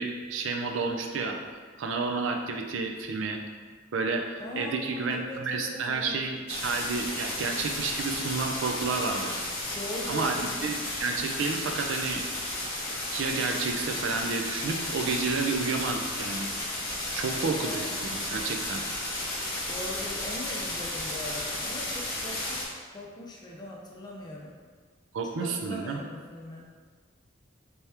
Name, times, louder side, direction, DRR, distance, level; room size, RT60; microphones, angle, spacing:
voice 1, 0.0-1.4 1.8-3.4 3.9-4.2 4.5-9.3 10.1-12.2 12.9-16.5 17.1-18.8 25.1-26.0, right 4 dB, 70° right, 4 dB, 0.4 m, -30 dB
voice 2, 4.4-6.2 9.7-10.6 17.3-17.9 19.7-24.6 25.4-26.7, left 1 dB, 20° left, -2 dB, 0.5 m, -40 dB
sound 1, 6.5-22.6, left 1 dB, 50° left, 0.9 m, -33 dB
3.4 x 2.9 x 3.3 m, 1.5 s
head